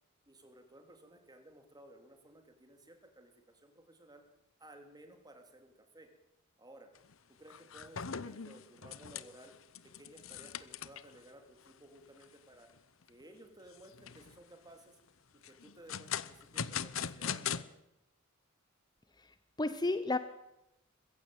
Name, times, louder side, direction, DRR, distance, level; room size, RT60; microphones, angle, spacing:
voice 1, 0.3-4.2 4.6-6.1 6.6-6.9 7.3-9.6 9.8-12.7 13.1-15.0 15.3-17.7, right 1 dB, 20° right, 5 dB, 3.4 m, -57 dB
sound 1, 6.9-7.1 7.5-11.2 11.7-11.8 12.2-12.3 12.8-13.2 13.7-14.4 15.4-17.6, left 8 dB, 75° left, 0.9 m, -40 dB
voice 2, 19.2-20.2, left 2 dB, 20° left, 11 dB, 0.9 m, -33 dB
22.0 x 15.5 x 9.1 m, 0.90 s
head